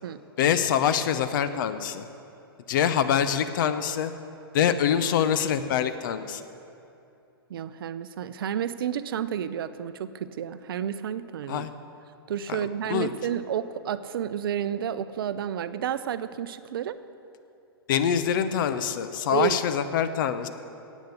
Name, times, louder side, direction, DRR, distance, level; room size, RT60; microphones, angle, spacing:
voice 1, 0.4-2.0 2.7-4.1 4.5-6.4 11.5-11.7 12.5-12.6 12.9-13.1 17.9-20.5, left 8 dB, 55° left, 11 dB, 0.7 m, -25 dB
voice 2, 7.5-11.7 12.3-17.0 19.3-19.6, right 9 dB, 65° right, 13 dB, 0.6 m, -30 dB
10.0 x 8.3 x 8.3 m, 2.8 s
hypercardioid pair, 115°, 13 cm